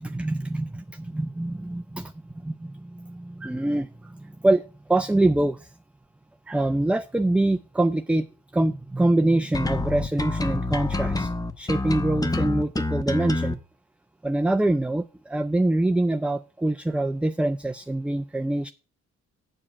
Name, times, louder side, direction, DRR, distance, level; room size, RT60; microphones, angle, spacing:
voice 1, 0.0-5.7 6.5-8.3 8.5-11.3 11.6-13.6 14.2-18.7, right 1 dB, 5° right, 10 dB, 0.4 m, -25 dB
sound 1, 9.5-13.5, left 2 dB, 10° left, 0.9 m, -27 dB
8.6 x 4.9 x 7.5 m, 0.34 s
cardioid pair, 90°, 30 cm